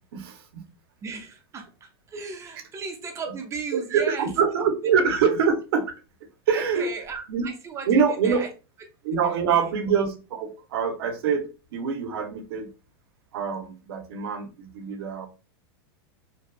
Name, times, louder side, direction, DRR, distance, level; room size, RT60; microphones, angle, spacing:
voice 1, 0.1-0.6 3.7-5.9 6.5-6.9 7.3-7.5 7.9-8.4 9.0-12.7 13.3-15.3, right 6 dB, 70° right, 7 dB, 0.6 m, -24 dB
voice 2, 1.0-4.3 6.5-7.9 8.2-8.5 9.2-9.7, right 5 dB, 20° right, 4 dB, 0.6 m, -36 dB
2.6 x 2.3 x 2.2 m, 0.33 s
hypercardioid pair, 125°, 13 cm